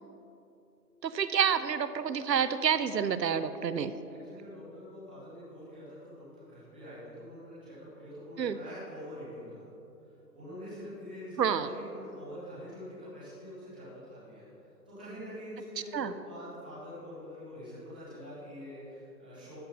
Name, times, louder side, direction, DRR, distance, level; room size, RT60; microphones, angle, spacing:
voice 1, 1.0-3.9 8.4-8.6 11.4-11.7 15.9-16.1, right 7 dB, 85° right, 13 dB, 0.8 m, -28 dB
voice 2, 4.2-9.6 10.3-14.4 14.9-19.6, left 1 dB, 5° right, -12 dB, 1.1 m, -45 dB
14.5 x 9.3 x 4.1 m, 2.9 s
hypercardioid pair, 175°, 49 cm